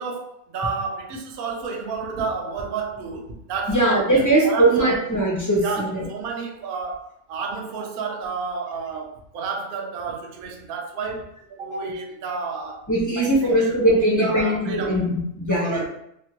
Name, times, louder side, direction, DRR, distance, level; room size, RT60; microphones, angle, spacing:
voice 1, 0.0-5.0 5.6-12.9 13.2-13.7 14.2-15.0 15.5-15.8, right 5 dB, 65° right, 1 dB, 0.5 m, -31 dB
voice 2, 3.7-6.0 12.9-15.8, right 1 dB, 25° left, -5 dB, 0.4 m, -20 dB
3.3 x 2.1 x 2.8 m, 0.76 s
omnidirectional pair, 1.5 m